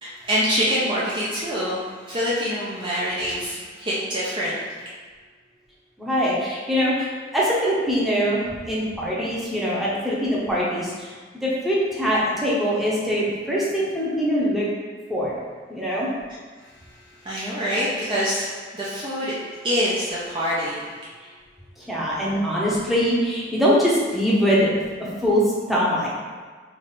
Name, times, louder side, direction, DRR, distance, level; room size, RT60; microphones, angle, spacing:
voice 1, 0.0-4.6 17.2-19.4 19.6-20.8, equal, 25° right, -8 dB, 0.6 m, -25 dB
voice 2, 6.0-14.7 15.1-15.3 15.7-16.1 21.9-24.7 25.0-26.1, equal, ahead, -7 dB, 0.9 m, -23 dB
3.5 x 3.2 x 4.0 m, 1.5 s
head